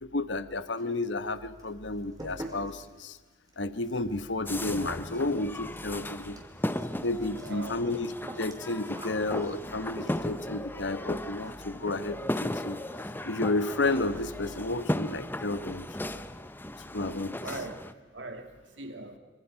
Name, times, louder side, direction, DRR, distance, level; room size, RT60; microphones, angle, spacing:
voice 1, 0.0-3.2 3.6-6.4 6.9-8.1 8.4-16.2 16.9-17.5, left 2 dB, 70° left, 1.2 m, -32 dB
sound 1, 0.7-1.3 1.6-10.5 11.4-11.6 11.9-12.3 12.6-12.7 13.1-13.2 13.5-13.6 14.0-14.4, right 1 dB, 20° right, 3.6 m, -47 dB
sound 2, 4.5-17.9, left 1 dB, 10° left, 0.8 m, -36 dB
voice 2, 7.2-7.7 17.4-17.8 18.1-19.2, right 2 dB, 70° right, 2.9 m, -40 dB
26.5 x 25.5 x 5.8 m
head